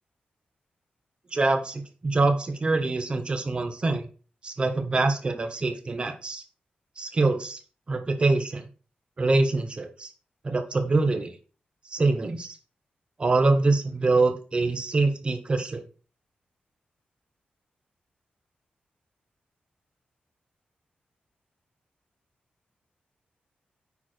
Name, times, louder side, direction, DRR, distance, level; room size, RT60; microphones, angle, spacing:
voice 1, 1.3-4.1 4.4-6.4 7.0-7.6 7.9-8.6 9.2-10.1 10.4-11.3 11.9-12.6 13.2-15.8, right 3 dB, 30° right, 6 dB, 1.2 m, -24 dB
9.7 x 4.7 x 4.4 m, 0.37 s
wide cardioid pair, 135°, 3 cm